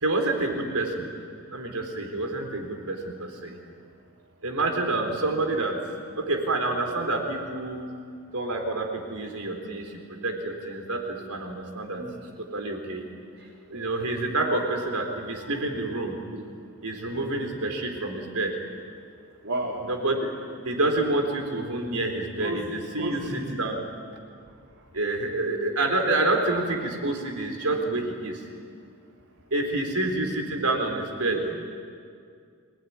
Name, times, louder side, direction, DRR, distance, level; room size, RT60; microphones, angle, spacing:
voice 1, 0.0-1.1 1.5-3.6 4.4-5.8 6.2-7.9 8.3-12.0 12.5-13.1 13.7-16.5 16.8-18.5 19.8-20.3 20.6-23.8 24.9-28.4 29.5-31.5, right 2 dB, 85° right, 3 dB, 4.2 m, -28 dB
voice 2, 11.9-12.3 13.4-13.5 19.4-19.9 22.4-23.7 24.4-24.5 31.3-31.5, right 1 dB, 65° right, -4 dB, 3.4 m, -33 dB
25.0 x 19.0 x 9.8 m, 2.3 s
head